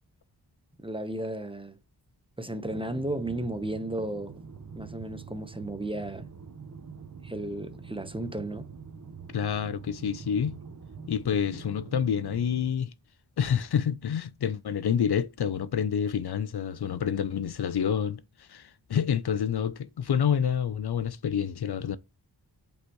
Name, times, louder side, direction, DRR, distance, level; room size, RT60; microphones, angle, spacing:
voice 1, 0.8-1.8 2.4-4.4 4.7-6.3 7.2-8.7, right 1 dB, 15° right, 1.0 m, -34 dB
sound 1, 2.6-12.7, right 5 dB, 45° right, 1.2 m, -44 dB
voice 2, 9.3-10.6 11.1-12.9 13.4-22.0, left 8 dB, 70° left, 0.7 m, -28 dB
8.0 x 5.5 x 3.1 m
cardioid pair, 55°, 40 cm